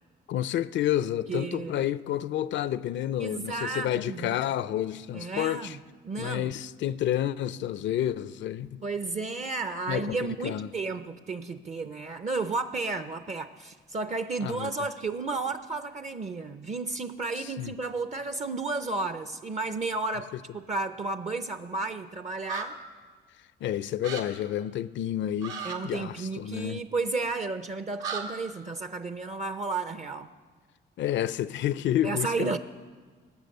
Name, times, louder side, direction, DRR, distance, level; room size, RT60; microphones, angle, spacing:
voice 1, 0.3-5.8 6.2-8.8 9.9-10.7 14.4-14.7 17.4-17.7 23.6-26.9 31.0-32.6, left 11 dB, 70° left, 0.5 m, -30 dB
voice 2, 1.3-1.9 3.2-4.4 5.1-5.8 6.0-6.5 8.8-22.8 25.6-30.3 32.0-32.6, right 3 dB, 35° right, 0.6 m, -32 dB
sound 1, 22.4-22.6 24.0-24.2 25.4-25.8 28.0-28.2, right 6 dB, 80° right, 1.9 m, -34 dB
21.0 x 7.6 x 6.6 m
cardioid pair, 90°, 20 cm